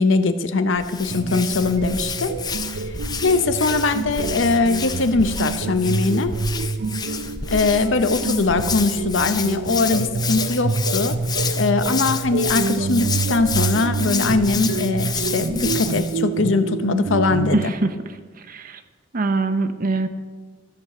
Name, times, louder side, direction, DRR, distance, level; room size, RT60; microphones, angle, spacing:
voice 1, 0.0-2.3 2.9-3.0 3.2-6.3 7.5-11.2 11.6-17.7, left 3 dB, 75° left, 10 dB, 0.7 m, -21 dB
Hands, 0.8-16.2, left 6 dB, 20° left, 0.5 m, -29 dB
sound 1, 1.1-17.7, right 4 dB, 90° right, 0.5 m, -27 dB
voice 2, 17.5-18.2 18.5-18.8 19.1-20.1, right 3 dB, 45° right, 10 dB, 0.6 m, -23 dB
14.0 x 4.8 x 6.7 m, 1.4 s
head